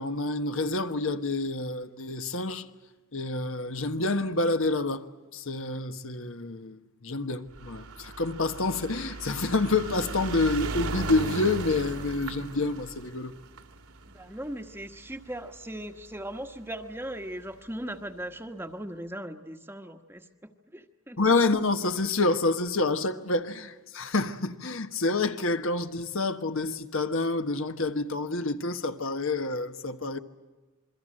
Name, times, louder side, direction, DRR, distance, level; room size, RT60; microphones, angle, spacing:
voice 1, 0.0-2.7 3.1-5.1 5.3-13.4 21.2-30.2, left 3 dB, 65° left, 1.3 m, -28 dB
sound 1, 7.5-16.0 16.8-16.9 17.1-17.2 17.5-17.6, right 3 dB, 80° right, 2.3 m, -37 dB
voice 2, 14.1-21.2, right 1 dB, 10° right, 1.2 m, -39 dB
27.5 x 23.0 x 7.7 m
head